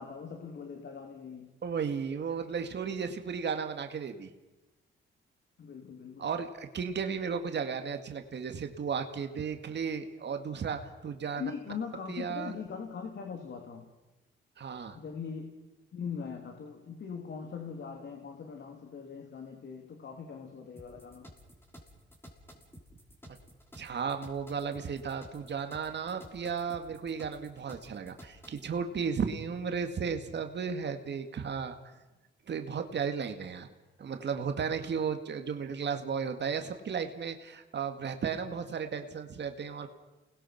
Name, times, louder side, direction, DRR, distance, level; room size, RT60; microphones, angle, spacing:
voice 1, 0.0-1.5 5.6-6.3 9.7-9.8 11.3-13.9 14.9-15.5 15.9-21.3, left 6 dB, 60° left, 4 dB, 3.2 m, -41 dB
voice 2, 1.6-4.3 6.2-11.4 12.1-12.6 14.6-15.0 23.8-31.8 32.5-33.7 34.0-39.9, right 6 dB, 55° right, 6 dB, 2.1 m, -34 dB
sound 1, 20.8-28.7, equal, 10° left, 6.0 m, -53 dB
29.5 x 20.5 x 6.0 m, 1.1 s
cardioid pair, 85°, 21 cm